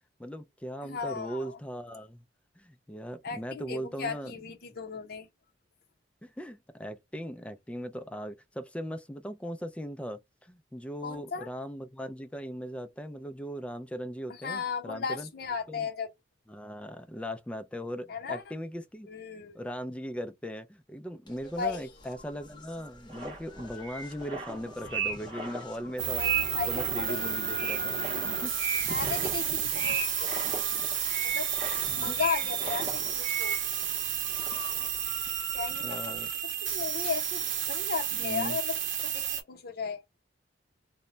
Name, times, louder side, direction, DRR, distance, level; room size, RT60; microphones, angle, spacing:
voice 1, 0.2-2.2 2.6-4.3 6.2-15.3 15.7-15.9 16.5-19.1 19.5-26.2 26.7-28.5 32.1-32.2 34.8-34.9 35.8-36.3 38.2-38.6, equal, 5° left, 0.3 m, -39 dB
voice 2, 0.8-1.6 3.2-5.3 11.0-11.5 14.3-16.1 18.1-18.4 19.1-19.6 21.6-21.9 26.2-27.2 27.7-27.8 28.9-30.7 31.2-31.5 31.9-33.6 35.5-36.1 36.6-40.0, left 5 dB, 55° left, 0.7 m, -36 dB
sound 1, 21.3-37.6, left 6 dB, 25° left, 0.7 m, -47 dB
sound 2, 23.1-34.1 34.3-34.9, right 5 dB, 30° right, 0.7 m, -36 dB
sound 3, 26.0-39.4, right 9 dB, 80° right, 0.7 m, -31 dB
2.2 x 2.0 x 3.7 m
head